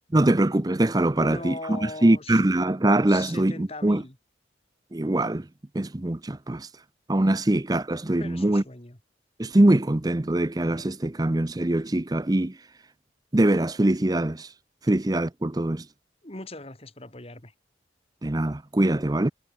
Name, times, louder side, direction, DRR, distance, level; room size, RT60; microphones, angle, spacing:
voice 1, 0.1-4.0 4.9-5.5 5.7-6.7 7.1-8.6 9.4-12.6 13.3-14.5 14.9-15.8 18.2-19.3, right 1 dB, 20° right, 0.6 m, -23 dB
voice 2, 1.1-2.4 3.1-4.2 8.2-9.0 16.2-17.5, left 2 dB, 30° left, 2.6 m, -39 dB
head